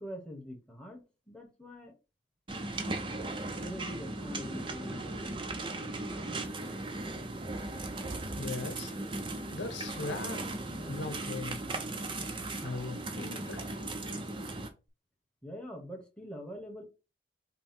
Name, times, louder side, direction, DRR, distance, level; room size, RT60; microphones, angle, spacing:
voice 1, 0.0-1.9 3.5-5.3 15.4-16.8, equal, 5° left, 1.2 m, -44 dB
sound 1, 2.5-14.7, right 2 dB, 30° right, 0.6 m, -37 dB
voice 2, 8.3-8.9 9.5-10.4 10.8-11.6 12.6-13.8, left 3 dB, 90° left, 0.9 m, -39 dB
5.5 x 2.2 x 4.3 m
head